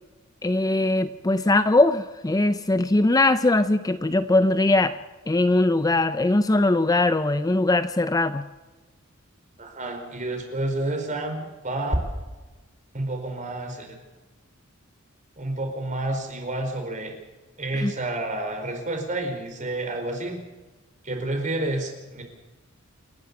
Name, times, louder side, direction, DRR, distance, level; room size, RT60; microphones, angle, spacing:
voice 1, 0.4-5.0 5.3-8.4 17.7-17.9, left 2 dB, 15° left, 12 dB, 0.5 m, -21 dB
voice 2, 9.6-12.0 12.9-13.9 15.4-17.1 17.6-20.4 21.0-22.2, right 2 dB, 35° right, 3 dB, 4.6 m, -29 dB
28.5 x 11.0 x 8.6 m, 1.2 s
head